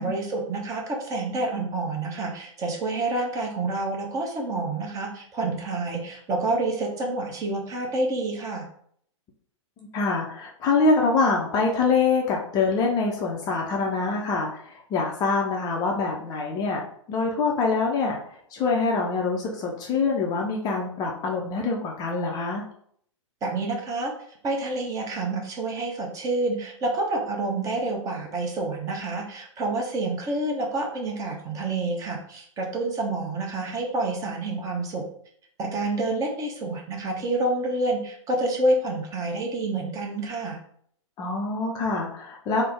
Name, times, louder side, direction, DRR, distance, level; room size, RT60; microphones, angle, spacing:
voice 1, 0.0-8.7 23.4-35.0 35.6-40.6, right 2 dB, 20° right, 0 dB, 0.7 m, -28 dB
voice 2, 9.9-22.6 41.2-42.6, left 4 dB, 25° left, 0 dB, 0.5 m, -25 dB
3.3 x 2.0 x 3.4 m, 0.63 s
figure-of-eight pair, 110°, 17 cm